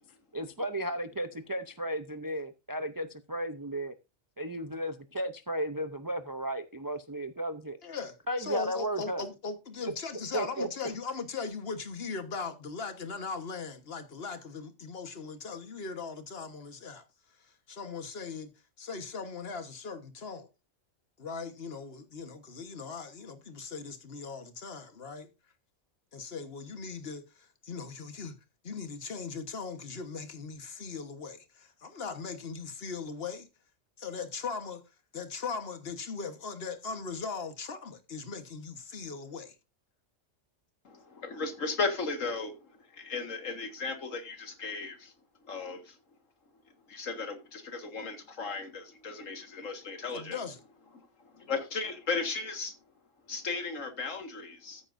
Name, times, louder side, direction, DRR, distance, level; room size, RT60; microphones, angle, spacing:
voice 1, 0.3-3.9 4.4-7.8 8.3-9.2 9.8-9.9 10.3-10.7, right 1 dB, 30° right, 0.4 m, -34 dB
voice 2, 7.8-17.0 17.7-18.5 18.8-20.5 21.2-25.3 26.1-28.4 28.6-33.5 34.0-34.8 35.1-39.5 50.1-50.6, left 5 dB, 50° left, 1.5 m, -39 dB
voice 3, 40.9-45.1 45.4-46.0 46.9-50.4 51.2-52.7 53.3-54.8, left 4 dB, 80° left, 2.0 m, -36 dB
14.0 x 8.7 x 2.6 m
omnidirectional pair, 1.3 m